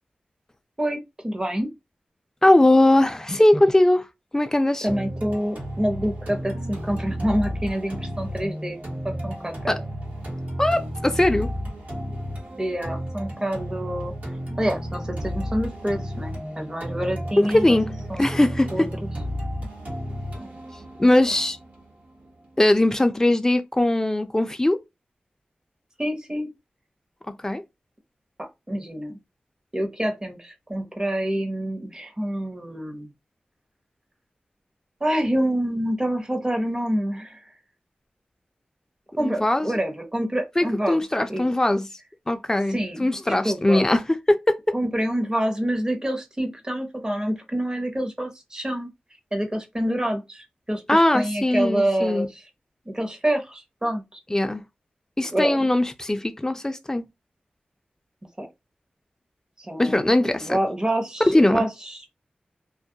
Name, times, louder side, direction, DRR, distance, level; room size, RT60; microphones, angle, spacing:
voice 1, 0.8-1.7 4.8-8.8 9.0-9.7 12.6-14.1 14.6-17.8 18.1-18.9 20.4-20.5 26.0-26.5 28.4-29.2 29.7-33.1 35.0-37.5 39.2-41.0 41.3-41.5 42.7-43.1 43.4-43.8 44.7-48.9 49.3-52.4 52.9-54.2 55.3-55.7 58.4-58.5 59.6-62.1, right 1 dB, 20° right, 0.8 m, -27 dB
voice 2, 2.4-4.1 4.3-4.9 9.7-9.8 10.6-11.5 17.4-18.7 21.0-21.6 22.6-24.8 27.4-27.6 39.2-39.7 40.6-41.8 42.3-44.0 44.3-44.6 50.9-52.3 54.3-54.6 55.2-57.0 59.8-60.6 61.3-61.7, left 1 dB, 15° left, 0.4 m, -20 dB
sound 1, 4.9-22.8, equal, 60° right, 1.1 m, -33 dB
2.3 x 2.1 x 2.7 m
wide cardioid pair, 60°, 3 cm